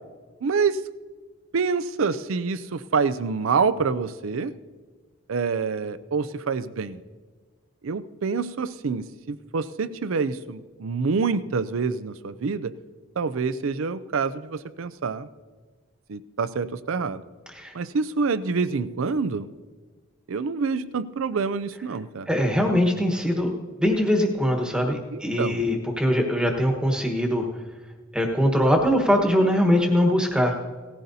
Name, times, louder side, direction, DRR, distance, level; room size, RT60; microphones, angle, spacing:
voice 1, 0.4-0.8 1.5-4.5 5.3-7.0 7.8-12.7 13.2-15.3 16.1-17.2 17.7-19.5 20.3-22.3 25.1-25.6, right 5 dB, 80° right, 15 dB, 0.5 m, -26 dB
voice 2, 22.3-23.5 23.8-27.5 28.1-30.6, equal, 5° right, 2 dB, 1.2 m, -22 dB
18.0 x 14.5 x 2.7 m, 1.4 s
head